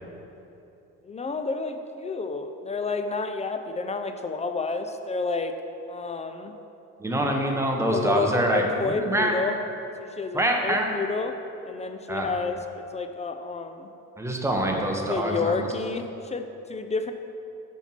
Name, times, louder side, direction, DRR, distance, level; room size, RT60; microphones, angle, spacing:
voice 1, 1.0-5.5 5.9-6.5 7.9-9.6 10.0-11.4 11.6-13.9 15.1-17.1, left 4 dB, 20° left, 7 dB, 0.3 m, -30 dB
voice 2, 7.0-9.3 10.3-10.8 12.1-12.3 14.2-15.7, right 1 dB, 10° right, 1 dB, 0.9 m, -25 dB
5.7 x 4.4 x 5.7 m, 2.9 s
cardioid pair, 90°, 31 cm